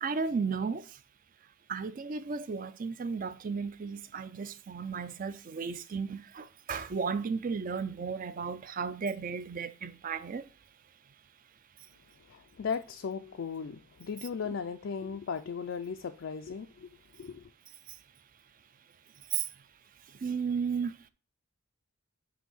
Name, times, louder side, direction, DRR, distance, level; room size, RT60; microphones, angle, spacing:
voice 1, 0.0-0.9 1.7-10.4 19.3-19.5 20.2-21.1, right 5 dB, 40° right, 0.4 m, -34 dB
voice 2, 12.3-17.5, left 6 dB, 55° left, 0.4 m, -37 dB
7.9 x 2.7 x 6.0 m
head